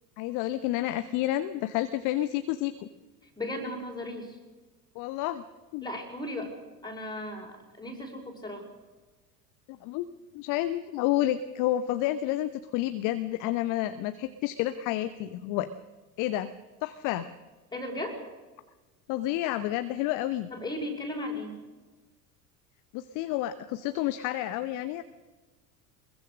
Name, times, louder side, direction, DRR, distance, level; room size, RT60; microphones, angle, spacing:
voice 1, 0.2-2.9 4.9-5.4 5.7-5.9 9.7-10.1 10.3-15.7 16.2-16.5 16.8-17.3 19.1-20.5 22.9-25.0, left 14 dB, 40° left, 12 dB, 0.9 m, -30 dB
voice 2, 3.4-4.4 5.8-6.5 6.8-8.6 17.7-18.2 20.5-21.5, left 1 dB, 10° left, 1 dB, 5.5 m, -36 dB
23.5 x 21.5 x 6.5 m, 1.2 s
figure-of-eight pair, 80°, 49 cm